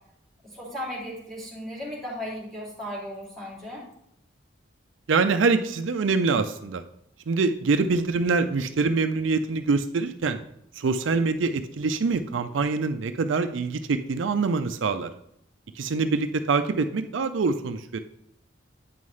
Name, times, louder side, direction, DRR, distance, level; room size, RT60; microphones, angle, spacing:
voice 1, 0.5-3.8, equal, ahead, -5 dB, 2.7 m, -36 dB
voice 2, 5.1-6.8 7.3-10.4 10.8-15.1 15.8-18.0, right 4 dB, 80° right, 8 dB, 0.5 m, -25 dB
8.4 x 5.5 x 3.2 m, 0.74 s
head